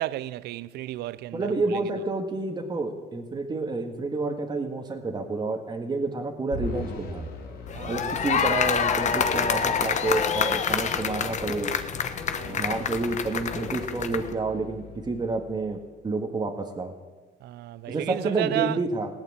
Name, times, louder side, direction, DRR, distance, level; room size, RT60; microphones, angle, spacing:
voice 1, 0.0-1.8 7.7-8.2 12.4-12.6 17.4-18.8, right 15 dB, 75° right, 0.6 m, -32 dB
voice 2, 1.3-7.2 7.9-11.7 12.5-15.8 16.0-16.9 17.9-19.1, right 3 dB, 25° right, 1.7 m, -29 dB
sound 1, 6.5-15.9, left 4 dB, 70° left, 3.4 m, -41 dB
sound 2, 7.7-14.3, left 7 dB, 45° left, 1.3 m, -27 dB
17.5 x 9.0 x 8.6 m
cardioid pair, 110°, 17 cm